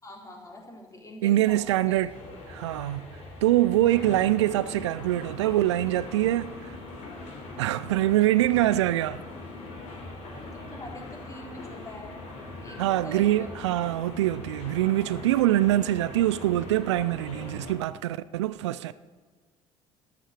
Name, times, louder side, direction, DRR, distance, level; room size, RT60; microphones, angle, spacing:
voice 1, 0.0-2.0 5.4-5.6 10.3-12.1 12.6-13.6, left 1 dB, 20° left, 3.8 m, -44 dB
voice 2, 1.2-2.1 2.5-3.1 3.4-6.7 7.6-9.2 12.8-18.9, right 14 dB, 70° right, 0.4 m, -24 dB
sound 1, 1.4-17.7, left 2 dB, 50° left, 3.5 m, -42 dB
13.0 x 9.9 x 6.6 m
figure-of-eight pair, 55°, 15 cm